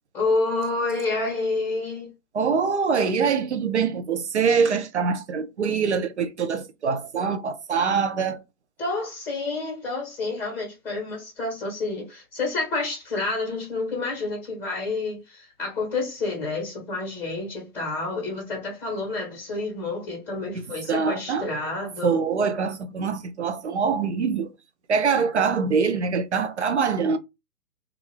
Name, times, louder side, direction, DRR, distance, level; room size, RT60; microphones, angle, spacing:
voice 1, 0.1-2.1 8.8-22.2, left 3 dB, 5° left, 0.9 m, -29 dB
voice 2, 2.3-8.4 20.6-21.6 22.0-24.5 24.9-27.2, right 5 dB, 50° right, 0.5 m, -24 dB
2.4 x 2.4 x 3.2 m
figure-of-eight pair, 135°, 47 cm